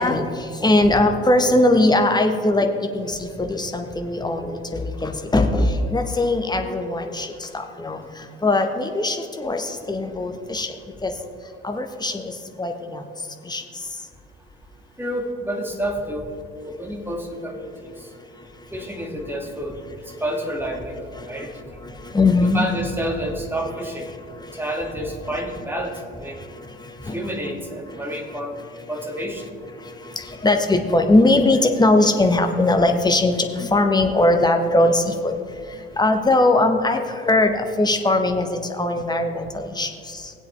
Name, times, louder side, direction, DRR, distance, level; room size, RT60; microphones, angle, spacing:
voice 1, 0.0-10.7 11.0-11.1 11.6-13.0 13.4-13.8 20.1-20.2 21.1-22.6 24.2-24.6 26.4-27.2 27.9-28.9 29.4-40.3, left 2 dB, 15° left, 5 dB, 1.2 m, -21 dB
voice 2, 15.0-16.3 16.7-17.7 18.7-19.8 20.2-21.5 22.4-24.0 24.6-26.4 27.1-28.6 28.9-29.5, right 1 dB, 5° right, 1 dB, 2.1 m, -29 dB
19.5 x 7.9 x 3.3 m, 2.3 s
figure-of-eight pair, 55°, 29 cm